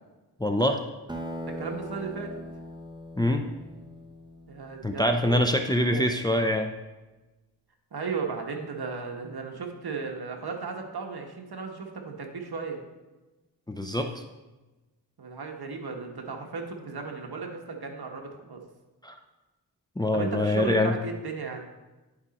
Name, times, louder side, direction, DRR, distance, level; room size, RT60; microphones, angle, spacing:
voice 1, 0.4-0.8 3.2-3.5 4.8-6.7 13.7-14.1 19.0-19.1 20.0-20.9, left 1 dB, 10° left, 5 dB, 0.5 m, -24 dB
Acoustic guitar, 1.1-5.9, equal, 10° right, 1.0 m, -41 dB
voice 2, 1.4-2.4 4.5-5.4 5.8-6.0 7.9-12.8 15.2-18.6 20.1-21.6, right 5 dB, 65° right, 2 dB, 1.3 m, -35 dB
10.5 x 5.1 x 4.1 m, 1.1 s
wide cardioid pair, 80°, 42 cm